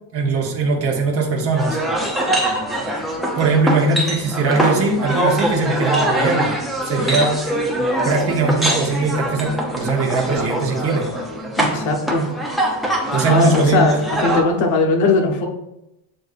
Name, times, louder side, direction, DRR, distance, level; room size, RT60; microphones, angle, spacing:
voice 1, 0.1-1.8 3.3-6.5 6.8-7.4 8.0-11.1 13.1-13.8, right 3 dB, 30° right, 0 dB, 0.8 m, -20 dB
sound 1, 1.5-14.4, right 1 dB, ahead, 0.3 m, -23 dB
voice 2, 11.6-12.3 13.3-15.5, left 3 dB, 70° left, 1 dB, 1.0 m, -19 dB
7.6 x 2.5 x 2.4 m, 0.88 s
cardioid pair, 165°, 48 cm